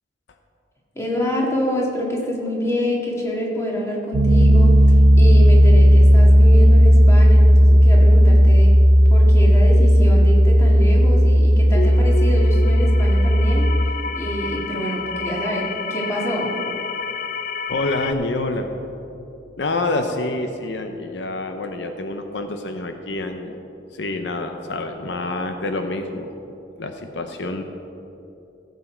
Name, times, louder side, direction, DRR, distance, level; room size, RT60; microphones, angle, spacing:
voice 1, 1.0-4.8 5.2-8.7 9.1-13.7 14.1-16.5, equal, 15° left, -3 dB, 2.0 m, -26 dB
Piano, 4.1-13.7, equal, 85° right, 1.0 m, -13 dB
sound 1, 11.7-18.1, left 4 dB, 45° left, 0.4 m, -30 dB
voice 2, 17.7-18.7 19.6-23.6 23.9-27.6, left 2 dB, 80° left, 6 dB, 0.7 m, -27 dB
15.5 x 8.2 x 4.5 m, 2.9 s
head